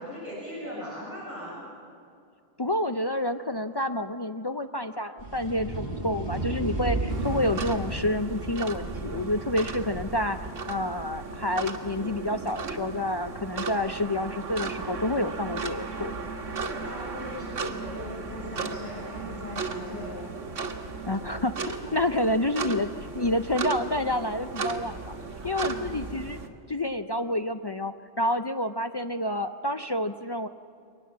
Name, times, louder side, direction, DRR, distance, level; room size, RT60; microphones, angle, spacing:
voice 1, 0.0-1.6 16.4-20.7 25.4-25.7, equal, 10° left, -6 dB, 7.2 m, -39 dB
voice 2, 2.6-10.4 10.7-16.1 21.1-22.9 23.1-25.1 25.4-26.4 26.7-30.5, left 1 dB, 45° left, 7 dB, 0.3 m, -29 dB
sound 1, 5.2-10.5, right 2 dB, 40° right, 2.8 m, -33 dB
sound 2, 7.1-26.5, right 4 dB, 90° right, 1.8 m, -36 dB
23.0 x 19.5 x 7.4 m, 2.3 s
omnidirectional pair, 1.2 m